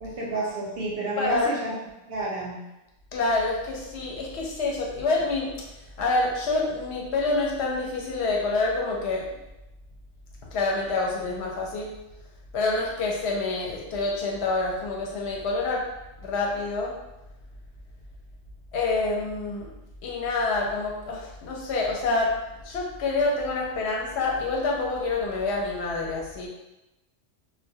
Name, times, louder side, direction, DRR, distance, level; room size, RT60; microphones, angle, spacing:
voice 1, 0.0-1.8 2.1-2.6, right 2 dB, 60° right, -4 dB, 0.6 m, -30 dB
voice 2, 1.2-1.5 3.1-5.5 6.0-9.2 10.5-11.9 12.5-15.8 16.2-16.9 18.7-19.7 20.0-22.3 22.6-26.5, left 3 dB, 65° left, -2 dB, 0.8 m, -27 dB
2.2 x 2.2 x 2.6 m, 0.96 s
omnidirectional pair, 1.3 m